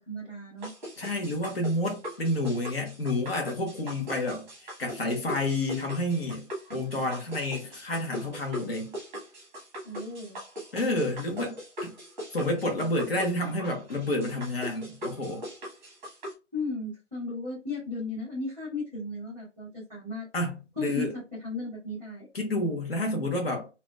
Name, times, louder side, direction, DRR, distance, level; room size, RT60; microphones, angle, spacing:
voice 1, 0.1-0.7 9.8-10.4 16.5-20.3 20.8-22.3, left 2 dB, 5° left, 1.9 m, -35 dB
sound 1, 0.6-16.3, equal, 10° right, 1.4 m, -40 dB
voice 2, 1.0-4.5 4.8-8.9 10.7-11.9 12.3-15.4 20.3-21.1 22.3-23.7, left 1 dB, 50° left, 1.5 m, -29 dB
4.1 x 2.9 x 2.4 m
figure-of-eight pair, 150°, 37 cm